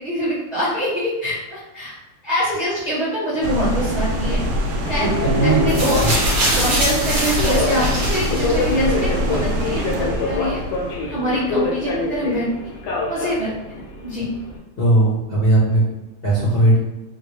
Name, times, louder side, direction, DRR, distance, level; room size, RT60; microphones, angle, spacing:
voice 1, 0.0-1.9 2.2-4.4 4.9-5.0 5.4-6.0 6.5-10.6 11.0-12.5 13.1-13.5 14.0-14.3, equal, 30° right, -9 dB, 0.5 m, -24 dB
sound 1, 3.4-12.4, equal, 75° right, 1.0 m, -25 dB
Subway metro underground, 4.9-14.6, left 2 dB, 75° left, 1.4 m, -26 dB
voice 2, 5.0-5.7 6.0-6.1 14.8-15.8 16.2-16.8, right 2 dB, 45° left, -10 dB, 0.7 m, -17 dB
sound 2, 5.7-8.9 9.8-9.9, right 1 dB, 50° right, 1.0 m, -23 dB
3.6 x 2.1 x 3.3 m, 1.0 s
omnidirectional pair, 2.3 m